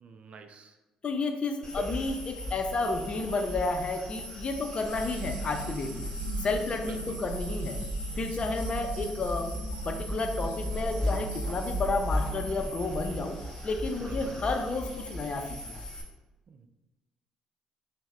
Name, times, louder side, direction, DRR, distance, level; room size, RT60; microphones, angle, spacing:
voice 1, 0.0-0.7 6.9-7.2 14.0-14.4 16.5-16.7, right 5 dB, 50° right, 8 dB, 0.4 m, -46 dB
voice 2, 1.0-6.1 6.4-7.8 8.2-9.5 9.8-13.4 13.6-15.8, left 3 dB, 40° left, 5 dB, 0.5 m, -31 dB
sound 1, 1.6-16.0, left 1 dB, 25° left, 1.4 m, -37 dB
sound 2, 4.8-13.4, right 3 dB, 75° right, 0.8 m, -38 dB
5.5 x 2.1 x 3.1 m, 1.1 s
hypercardioid pair, 55°, 3 cm